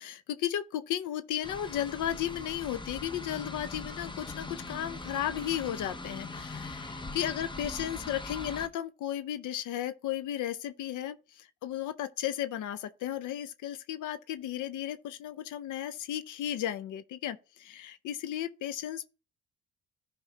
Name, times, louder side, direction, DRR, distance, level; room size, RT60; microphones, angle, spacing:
voice 1, 0.0-19.1, left 11 dB, 80° left, 0.6 m, -34 dB
sound 1, 1.4-8.7, left 2 dB, 15° left, 0.8 m, -41 dB
13.5 x 5.1 x 2.8 m
cardioid pair, 90°, 30 cm